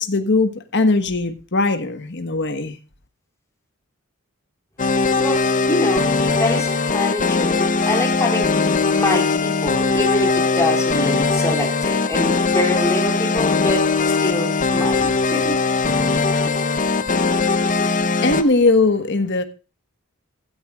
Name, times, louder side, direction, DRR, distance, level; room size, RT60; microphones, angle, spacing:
voice 1, 0.0-2.8 17.8-17.9 18.2-19.4, left 3 dB, 55° left, 1.4 m, -19 dB
sound 1, 4.8-18.4, left 4 dB, 35° left, 0.8 m, -20 dB
voice 2, 5.2-6.1 6.4-13.9 14.2-15.6, left 2 dB, 15° left, 3.7 m, -25 dB
16.0 x 13.5 x 2.4 m
head